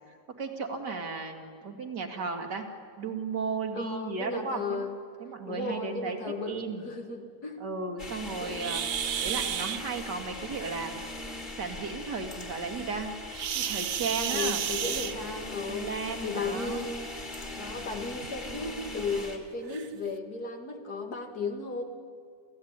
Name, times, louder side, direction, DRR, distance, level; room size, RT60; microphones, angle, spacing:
voice 1, 0.1-2.7 3.0-4.9 5.2-6.2 6.5-6.8 7.6-8.8 9.2-11.0 11.6-13.1 13.5-14.6 15.7-16.8, right 4 dB, 90° right, 4 dB, 2.8 m, -35 dB
voice 2, 3.7-5.0 5.5-7.7 8.4-8.7 14.1-16.0 16.2-17.1 17.6-21.8, left 3 dB, 70° left, 4 dB, 2.7 m, -35 dB
sound 1, 8.0-19.4, left 2 dB, 30° left, 2.9 m, -40 dB
sound 2, 8.6-9.8 13.3-15.6 16.8-17.0 17.6-17.7 18.2-18.3 19.1-19.2 19.7-19.9, right 9 dB, 60° right, 1.1 m, -32 dB
28.5 x 14.5 x 9.6 m, 2.3 s
omnidirectional pair, 1.8 m